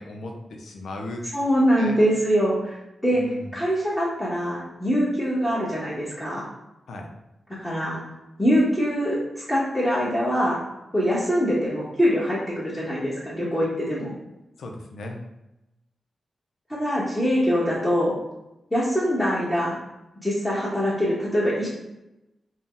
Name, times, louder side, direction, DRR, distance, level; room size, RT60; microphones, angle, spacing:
voice 1, 0.0-1.2 1.7-2.0 3.1-3.6 6.9-7.1 14.6-15.2, left 2 dB, 80° left, 2 dB, 0.4 m, -36 dB
voice 2, 1.3-2.8 3.0-6.4 7.6-8.0 8.4-10.6 10.9-14.1 16.7-18.1 18.7-19.8 20.2-21.7, equal, 10° left, -9 dB, 0.9 m, -23 dB
2.6 x 2.1 x 3.7 m, 0.93 s
cardioid pair, 60°, 0 cm